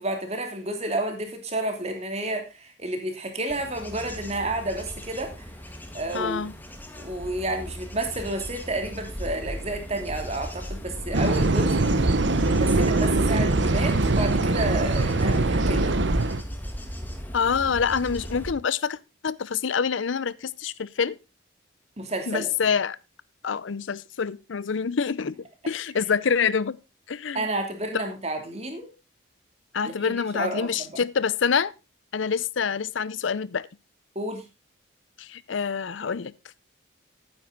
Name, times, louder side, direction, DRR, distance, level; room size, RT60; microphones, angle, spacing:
voice 1, 0.0-5.5 5.9-6.4 6.9-11.8 12.4-16.0 22.0-22.5 27.3-28.9 29.8-30.9 34.1-34.4, right 2 dB, 35° right, 2.9 m, -31 dB
Bird / Insect / Wind, 3.5-18.5, equal, 10° left, 1.7 m, -36 dB
voice 2, 6.1-6.5 17.3-19.0 19.2-21.2 22.3-23.0 23.4-26.8 27.1-27.4 29.7-31.7 32.1-33.7 35.2-36.3, left 6 dB, 75° left, 0.6 m, -26 dB
sound 1, 11.1-16.4, right 2 dB, 70° right, 1.0 m, -22 dB
12.0 x 9.7 x 3.9 m
head